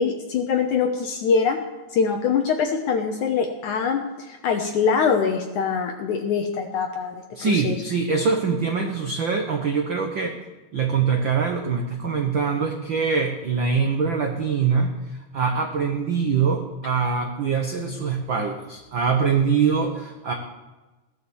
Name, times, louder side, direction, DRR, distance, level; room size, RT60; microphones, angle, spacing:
voice 1, 0.0-1.6 1.9-7.1 7.4-7.8, left 5 dB, 70° left, 4 dB, 2.2 m, -23 dB
voice 2, 7.3-10.3 10.7-14.9 15.3-20.3, right 5 dB, 75° right, 3 dB, 1.1 m, -23 dB
17.0 x 10.5 x 7.1 m, 1.2 s
omnidirectional pair, 4.0 m